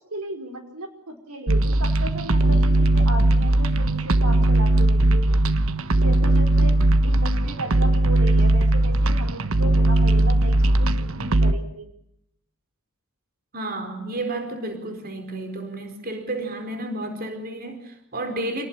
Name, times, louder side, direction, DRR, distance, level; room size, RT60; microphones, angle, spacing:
voice 1, 0.1-5.2 6.0-6.8 7.0-11.9, right 1 dB, 90° right, 4 dB, 4.9 m, -35 dB
sound 1, 1.5-11.5, right 1 dB, 70° right, 1.3 m, -19 dB
voice 2, 13.5-18.7, right 2 dB, 45° right, 6 dB, 4.4 m, -31 dB
28.0 x 19.0 x 8.8 m, 0.76 s
head